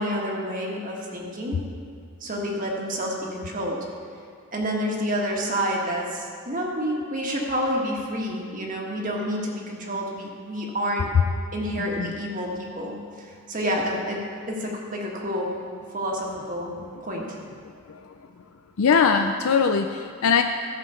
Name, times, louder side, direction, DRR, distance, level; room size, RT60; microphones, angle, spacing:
voice 1, 0.0-1.6 2.2-3.8 4.5-11.1 11.5-15.6 15.9-16.7 17.0-17.2, equal, 40° right, -1 dB, 1.5 m, -29 dB
voice 2, 18.8-20.4, left 6 dB, 85° left, 6 dB, 0.4 m, -21 dB
13.5 x 5.6 x 6.8 m, 2.1 s
head